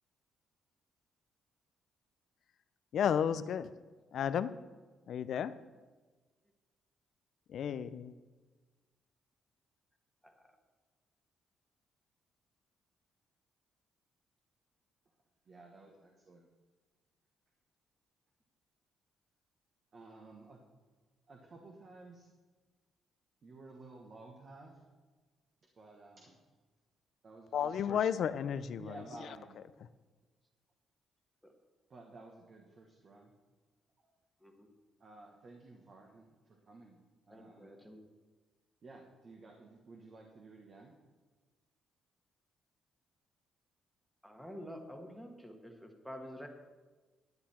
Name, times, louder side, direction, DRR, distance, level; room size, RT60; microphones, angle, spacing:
voice 1, 2.9-3.7 4.1-4.5 5.1-5.5 7.5-8.1 27.5-29.6, left 8 dB, 65° left, 14 dB, 0.5 m, -33 dB
voice 2, 15.5-16.5 19.9-20.6 21.3-22.3 23.4-24.8 25.7-26.4 27.2-27.7 28.8-29.6 31.9-33.3 35.0-37.0 37.3-37.7 38.8-40.9, right 3 dB, 50° right, 1 dB, 1.5 m, -54 dB
voice 3, 37.3-38.0 44.2-46.5, equal, ahead, 4 dB, 1.5 m, -48 dB
11.5 x 9.6 x 4.4 m, 1.3 s
cardioid pair, 90°, 0 cm